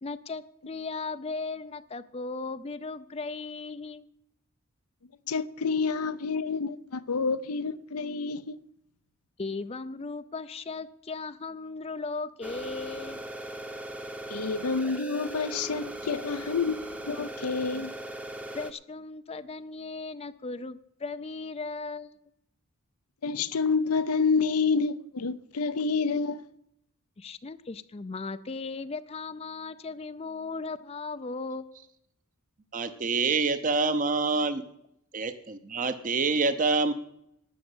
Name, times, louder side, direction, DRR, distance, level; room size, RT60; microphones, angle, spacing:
voice 1, 0.0-4.1 9.4-13.2 18.5-22.1 27.2-31.9, left 3 dB, 25° left, 0.4 m, -37 dB
voice 2, 5.3-8.6 14.3-17.9 23.2-26.5, left 4 dB, 90° left, 0.7 m, -28 dB
sound 1, 12.4-18.7, right 1 dB, 5° right, 0.8 m, -39 dB
voice 3, 32.7-34.6 35.1-36.9, right 4 dB, 35° right, 0.8 m, -26 dB
12.0 x 8.5 x 7.9 m
head